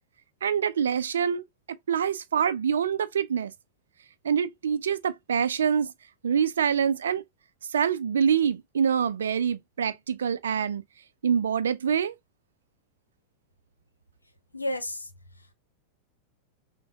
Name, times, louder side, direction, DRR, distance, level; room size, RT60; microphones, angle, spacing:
voice 1, 0.4-1.4 1.9-3.5 4.2-5.9 6.2-7.2 7.7-10.8 11.2-12.1, right 7 dB, 65° right, 0.5 m, -25 dB
voice 2, 14.5-15.5, left 1 dB, 80° left, 0.8 m, -33 dB
6.1 x 2.2 x 2.7 m
figure-of-eight pair, 90°, 0 cm